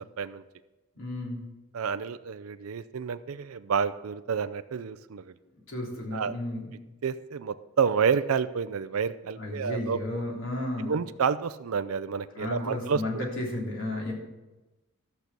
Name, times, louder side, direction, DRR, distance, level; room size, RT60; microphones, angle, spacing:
voice 1, 1.0-1.5 5.7-6.7 9.4-10.9 12.3-14.1, left 1 dB, 65° left, -2 dB, 3.3 m, -33 dB
voice 2, 1.7-5.2 6.1-6.3 7.0-10.0 10.9-13.2, right 6 dB, 90° right, 12 dB, 0.5 m, -29 dB
14.0 x 6.8 x 6.0 m, 1.1 s
head